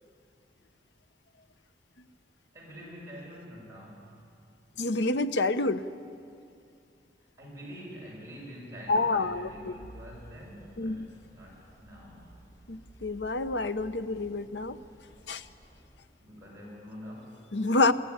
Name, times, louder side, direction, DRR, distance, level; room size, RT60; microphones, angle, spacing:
voice 1, 2.5-4.2 7.4-12.3 16.2-17.4, equal, 15° right, -5 dB, 6.9 m, -46 dB
voice 2, 4.8-5.8 8.9-9.7 10.8-11.1 12.7-14.8 15.3-15.4 17.5-17.9, left 2 dB, 85° left, 11 dB, 0.8 m, -28 dB
sound 1, 8.8-16.0, equal, 20° left, 6.0 m, -54 dB
23.0 x 15.5 x 9.7 m, 2.4 s
head